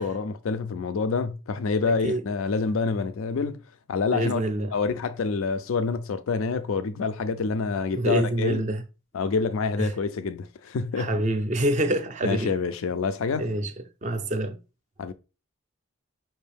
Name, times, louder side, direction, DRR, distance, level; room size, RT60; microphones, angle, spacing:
voice 1, 0.0-3.6 3.9-4.4 4.7-8.6 9.1-11.2 12.2-13.5 15.0-15.1, left 4 dB, 80° left, 0.4 m, -27 dB
voice 2, 4.1-4.7 8.0-8.8 9.8-9.9 11.0-12.5 13.4-13.7 14.0-14.6, right 1 dB, 35° right, 0.4 m, -26 dB
5.5 x 2.6 x 3.4 m
head